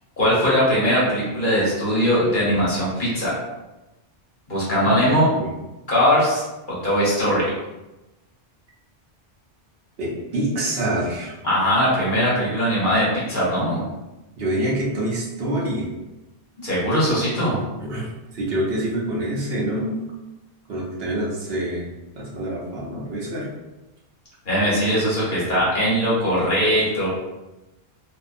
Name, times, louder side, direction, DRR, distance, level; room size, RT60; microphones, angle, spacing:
voice 1, 0.2-3.3 4.5-5.3 5.9-7.5 11.4-13.8 16.6-17.6 24.4-27.1, equal, 50° left, -7 dB, 1.0 m, -20 dB
voice 2, 4.8-5.5 10.0-11.4 14.4-15.9 17.8-20.0 20.7-21.9 22.2-23.5, right 1 dB, 65° right, -4 dB, 0.8 m, -26 dB
2.6 x 2.2 x 2.5 m, 1.0 s
omnidirectional pair, 1.1 m